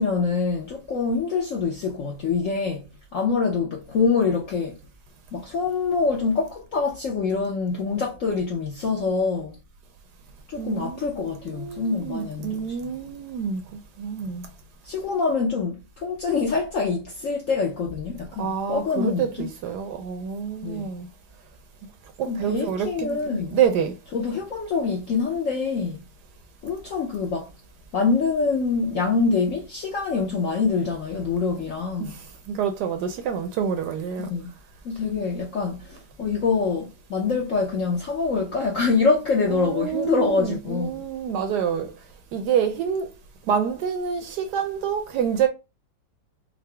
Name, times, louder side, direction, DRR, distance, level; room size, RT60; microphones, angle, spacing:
voice 1, 0.0-2.9 3.1-4.8 5.3-9.5 10.5-12.8 14.9-19.5 20.6-20.9 22.2-23.6 24.1-26.0 26.6-27.5 27.9-32.2 34.2-34.5 34.8-41.0, left 4 dB, 65° left, 0.8 m, -25 dB
voice 2, 10.6-14.5 18.4-21.1 22.2-24.0 32.0-34.3 39.5-42.0 42.3-43.1 43.5-45.5, right 8 dB, 70° right, 1.0 m, -27 dB
3.8 x 2.0 x 3.2 m
omnidirectional pair, 2.1 m